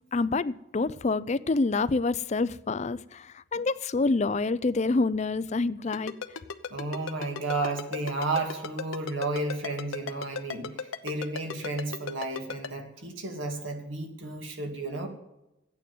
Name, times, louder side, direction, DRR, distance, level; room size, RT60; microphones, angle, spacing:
voice 1, 0.1-6.1, left 3 dB, 35° left, 0.4 m, -27 dB
Ringtone, 5.9-12.7, left 5 dB, 85° left, 0.9 m, -35 dB
voice 2, 6.7-15.1, right 2 dB, 70° right, 2.4 m, -32 dB
13.5 x 9.2 x 7.7 m
head